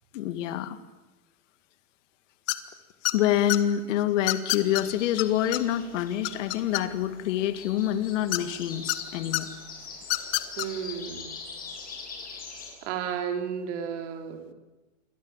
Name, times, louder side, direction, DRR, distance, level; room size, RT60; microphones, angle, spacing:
voice 1, 0.1-0.8 3.1-9.5, left 11 dB, 55° left, 11 dB, 2.3 m, -26 dB
sound 1, 2.5-2.7 3.0-3.6 4.3-4.8 5.2-5.3 5.5-5.6 6.0-7.1 8.3-9.0 9.3-9.4 10.0-10.7, left 22 dB, 40° left, 1.7 m, -27 dB
sound 2, 4.6-12.7, left 5 dB, 20° left, 7.3 m, -43 dB
voice 2, 10.6-11.4 12.8-14.5, right 8 dB, 55° right, 5 dB, 4.7 m, -33 dB
28.5 x 23.0 x 7.5 m, 1.1 s
hypercardioid pair, 140°, 43 cm